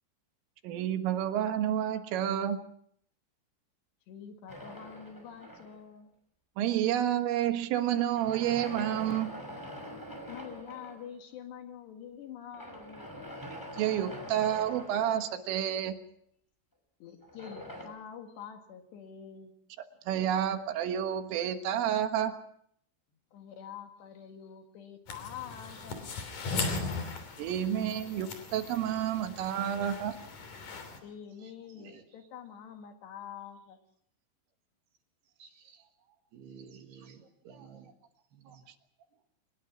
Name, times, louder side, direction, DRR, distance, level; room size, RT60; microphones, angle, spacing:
voice 1, 0.6-2.6 6.6-9.3 13.5-16.0 20.1-22.3 27.4-30.1, right 10 dB, 75° right, 7 dB, 4.0 m, -30 dB
voice 2, 4.1-6.1 10.3-13.1 17.0-19.5 23.3-26.1 31.0-33.8, left 8 dB, 65° left, 5 dB, 3.6 m, -46 dB
sound 1, 4.5-6.0 7.9-11.1 12.5-15.7 17.2-17.8, equal, 5° left, 5.3 m, -44 dB
sound 2, 25.1-31.0, left 3 dB, 45° left, 4.0 m, -38 dB
voice 3, 35.4-35.8 36.3-37.9 38.5-38.6, right 6 dB, 60° right, 4 dB, 3.6 m, -52 dB
24.0 x 20.5 x 6.1 m, 0.66 s
omnidirectional pair, 5.9 m